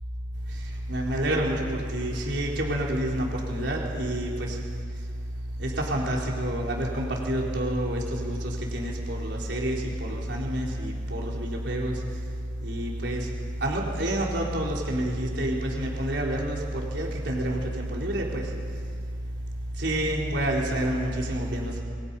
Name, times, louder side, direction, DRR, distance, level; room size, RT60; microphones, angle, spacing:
voice 1, 0.9-4.6 5.6-12.0 12.6-13.3 13.6-18.5 19.8-21.8, right 1 dB, 80° right, -2 dB, 3.9 m, -28 dB
26.5 x 23.5 x 5.5 m, 2.2 s
head